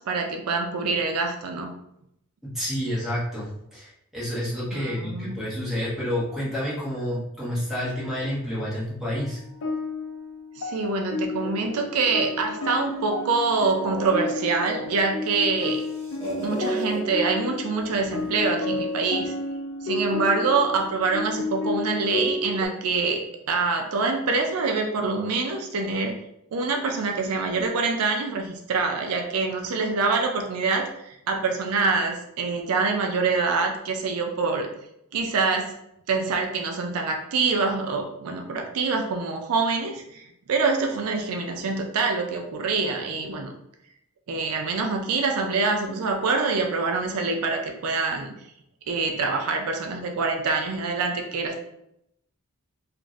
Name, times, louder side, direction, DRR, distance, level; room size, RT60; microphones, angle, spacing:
voice 1, 0.0-1.7 4.7-5.4 10.6-15.8 16.4-19.3 19.8-23.2 23.5-26.2 26.5-34.7 35.1-35.7 36.1-43.5 44.3-48.3 48.9-51.6, right 4 dB, 75° right, 3 dB, 0.4 m, -25 dB
voice 2, 2.5-9.4, equal, ahead, -8 dB, 1.1 m, -29 dB
sound 1, 9.1-22.7, left 2 dB, 65° left, 0.4 m, -31 dB
sound 2, 11.4-13.1 13.6-15.2 15.6-17.0 17.8-18.6, right 1 dB, 30° left, 1.1 m, -37 dB
2.5 x 2.5 x 3.1 m, 0.79 s
head